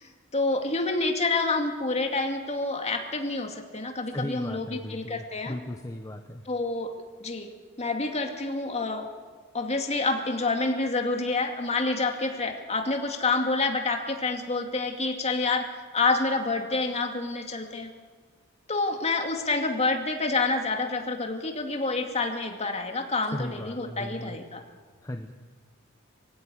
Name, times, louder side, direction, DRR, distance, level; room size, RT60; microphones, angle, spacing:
voice 1, 0.0-5.5 6.5-6.9 7.2-7.5 7.8-9.1 9.5-15.7 15.9-17.9 18.7-24.6, left 3 dB, 35° left, 4 dB, 2.4 m, -28 dB
voice 2, 4.1-6.4 23.3-24.4 25.0-25.3, left 1 dB, 15° left, 6 dB, 1.0 m, -36 dB
23.0 x 16.0 x 9.8 m, 1.5 s
head